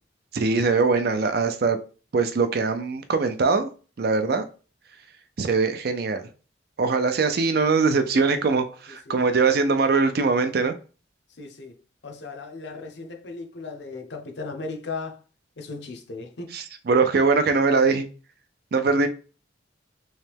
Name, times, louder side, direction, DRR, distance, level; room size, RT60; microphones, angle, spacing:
voice 1, 0.3-1.8 2.1-3.7 4.0-4.5 5.4-6.3 6.8-10.7 16.5-18.1 18.7-19.1, right 4 dB, 55° right, 0.5 m, -22 dB
voice 2, 11.4-11.7 12.0-15.2 15.6-16.5, left 3 dB, 65° left, 0.7 m, -36 dB
3.2 x 3.2 x 3.3 m
head